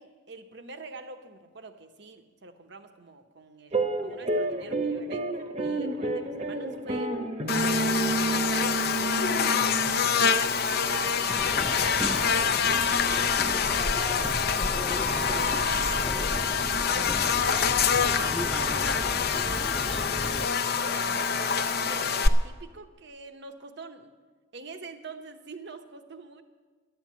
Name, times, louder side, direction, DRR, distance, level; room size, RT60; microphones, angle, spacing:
voice 1, 0.0-5.3 5.6-7.2 7.4-12.3 12.6-14.2 14.7-19.0 20.2-21.5 21.7-24.1 24.5-26.4, right 3 dB, 60° right, 7 dB, 1.0 m, -45 dB
sound 1, 3.7-10.2, right 2 dB, 35° right, 0.9 m, -30 dB
Buzz, 7.5-22.3, left 6 dB, 50° left, 0.6 m, -26 dB
sound 2, 11.3-20.5, equal, ahead, 0.3 m, -35 dB
11.5 x 8.0 x 9.3 m, 1.4 s
head